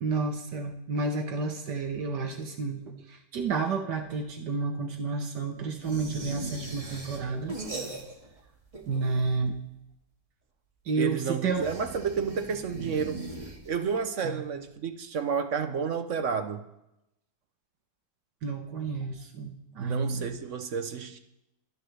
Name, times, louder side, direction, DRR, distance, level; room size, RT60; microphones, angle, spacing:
voice 1, 0.0-7.5 8.9-9.6 10.9-11.6 14.2-14.4 18.4-20.4, right 4 dB, 70° right, 1.6 m, -31 dB
sound 1, 5.8-8.4 8.7-9.5 11.5-14.0, right 2 dB, 20° right, 1.9 m, -40 dB
voice 2, 11.0-13.3 13.7-16.7 19.8-21.2, right 6 dB, 55° right, 1.0 m, -31 dB
24.0 x 10.5 x 3.3 m
omnidirectional pair, 1.9 m